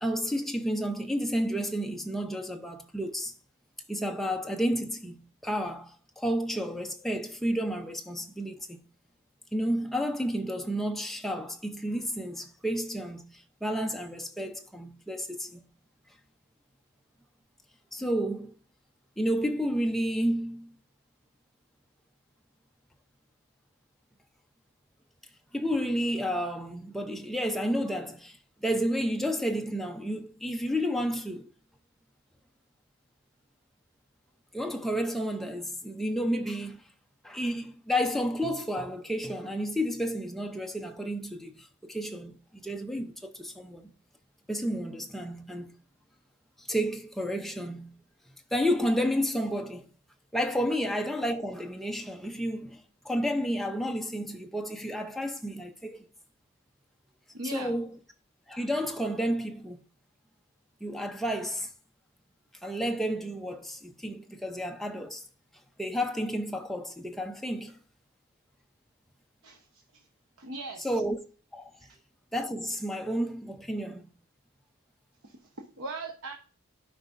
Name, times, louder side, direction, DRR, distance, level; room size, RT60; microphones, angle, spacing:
voice 1, 0.0-3.3 3.9-8.8 9.5-15.6 17.9-18.5 19.2-20.8 25.5-31.5 34.5-36.8 37.2-43.9 44.5-45.8 46.6-48.0 48.5-49.8 50.3-56.0 57.4-58.0 58.5-59.8 60.8-61.7 62.6-65.2 65.8-67.8 70.8-71.2 71.5-71.7 72.3-74.0, equal, ahead, 0.6 m, -31 dB
voice 2, 57.3-57.7 69.4-69.6 70.4-70.9 71.8-71.9 75.2-76.3, right 2 dB, 80° right, 0.9 m, -39 dB
12.0 x 4.9 x 2.5 m
head